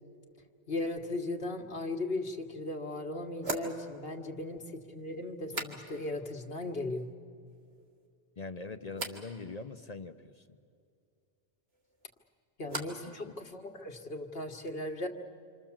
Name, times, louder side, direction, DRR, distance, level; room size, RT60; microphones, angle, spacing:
voice 1, 0.7-7.1 12.6-15.1, left 2 dB, 70° left, 4 dB, 1.8 m, -37 dB
sound 1, 2.2-2.3 3.4-6.3 6.5-7.1 7.5-8.1 8.9-9.3 11.7-13.1 13.4-14.0, right 2 dB, 80° right, 2.3 m, -43 dB
voice 2, 8.4-10.4 13.0-13.3, left 4 dB, 45° left, 9 dB, 0.8 m, -43 dB
27.0 x 26.5 x 7.3 m, 2.4 s
omnidirectional pair, 1.0 m